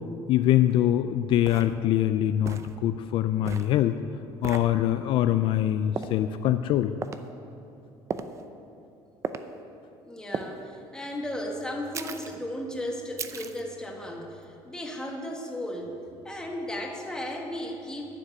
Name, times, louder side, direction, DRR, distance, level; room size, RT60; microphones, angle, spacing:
voice 1, 0.3-4.0 4.4-7.0, left 12 dB, 55° left, 10 dB, 0.4 m, -24 dB
sound 1, 0.7-0.8 1.5-1.7 2.5-2.7 3.4-3.7 4.4-4.7 6.0-6.2 7.0-7.2 8.1-8.4 9.2-9.5 10.3-10.5 11.9-12.3 13.2-13.6, right 6 dB, 30° right, 0.6 m, -35 dB
voice 2, 10.0-15.9 16.2-18.0, left 1 dB, 5° left, 0 dB, 1.6 m, -35 dB
11.5 x 6.6 x 9.4 m, 2.8 s
cardioid pair, 145°, 10 cm